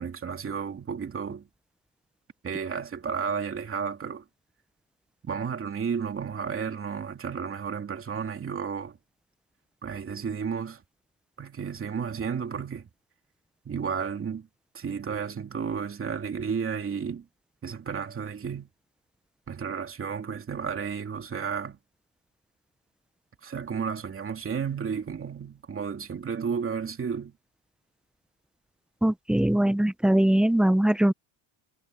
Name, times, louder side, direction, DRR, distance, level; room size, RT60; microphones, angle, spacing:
voice 1, 0.0-1.5 2.4-4.2 5.2-9.0 9.8-10.8 11.4-12.9 13.6-14.5 14.7-17.3 17.6-18.7 19.5-21.8 23.4-27.4, right 6 dB, 30° right, 2.8 m, -32 dB
voice 2, 29.0-31.1, right 1 dB, ahead, 0.3 m, -21 dB
cardioid pair, 130°, 45 cm